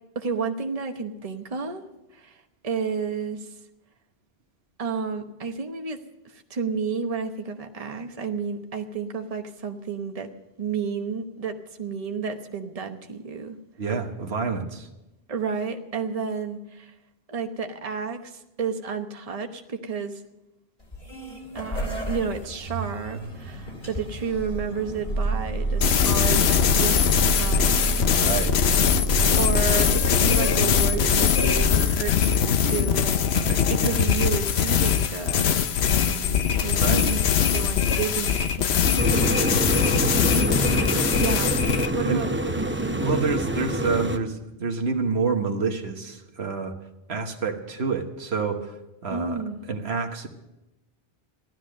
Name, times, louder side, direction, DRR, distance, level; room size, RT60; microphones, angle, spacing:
voice 1, 0.1-1.8 2.1-3.5 4.8-6.0 6.3-10.3 10.6-13.6 15.3-16.9 17.3-20.2 21.5-28.1 29.4-33.2 33.7-35.6 35.9-37.2 37.5-39.7 40.3-41.6 41.9-43.0 49.1-49.6, right 5 dB, 35° right, 5 dB, 1.1 m, -31 dB
voice 2, 13.8-14.9 28.1-28.5 33.3-34.0 36.8-37.1 42.1-42.3 43.0-46.7 47.1-48.7 49.0-49.4 49.7-50.3, right 4 dB, 85° right, 4 dB, 1.6 m, -28 dB
sound 1, 20.8-31.7, right 2 dB, 50° left, 2.9 m, -29 dB
sound 2, 25.8-41.9, left 8 dB, 90° left, 1.0 m, -22 dB
sound 3, 39.0-44.2, right 1 dB, 15° right, 0.7 m, -26 dB
15.5 x 12.0 x 6.5 m, 0.96 s
omnidirectional pair, 1.0 m